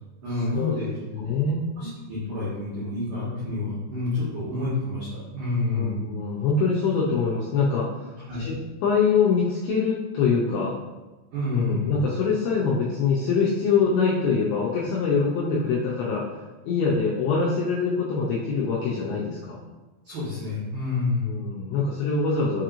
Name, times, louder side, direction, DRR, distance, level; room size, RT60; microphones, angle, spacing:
voice 1, 0.2-0.9 1.2-1.3 1.8-5.1 5.3-6.0 8.3-8.4 11.3-11.9 20.0-21.3, left 3 dB, 90° right, -11 dB, 1.7 m, -28 dB
voice 2, 1.1-1.6 5.7-8.1 8.4-10.8 11.5-16.4 16.7-19.6 21.3-22.6, left 5 dB, 85° left, -5 dB, 2.6 m, -24 dB
7.1 x 3.0 x 2.5 m, 1.2 s
omnidirectional pair, 5.8 m